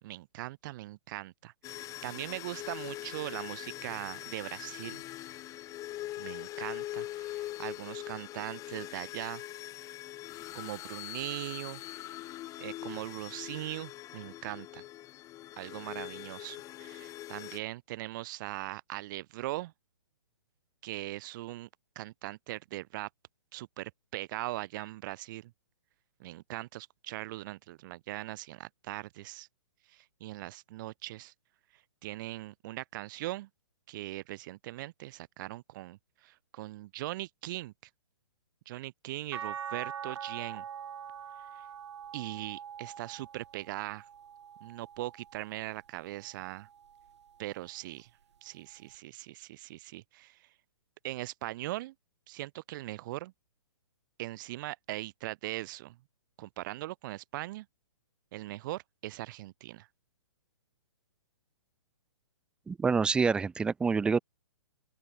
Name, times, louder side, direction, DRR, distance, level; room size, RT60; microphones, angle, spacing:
voice 1, 0.0-5.0 6.2-9.4 10.5-11.8 12.6-14.8 15.6-19.7 20.8-21.7 21.9-23.1 23.5-25.5 26.2-29.5 29.9-31.3 31.7-33.5 33.9-37.7 38.7-40.6 41.5-41.7 42.1-44.1 44.6-46.7 47.4-48.1 48.4-50.5 51.0-51.9 52.3-53.3 54.2-56.0 56.4-57.7 58.3-59.9, right 17 dB, 40° right, 2.8 m, -40 dB
sound 1, 1.6-17.6, left 15 dB, 20° left, 1.3 m, -42 dB
sound 2, 39.3-45.6 46.2-47.5 48.9-49.0, right 8 dB, 70° right, 3.4 m, -44 dB
voice 2, 62.7-64.2, right 5 dB, 5° right, 0.4 m, -27 dB
open air
hypercardioid pair, 145°, 15 cm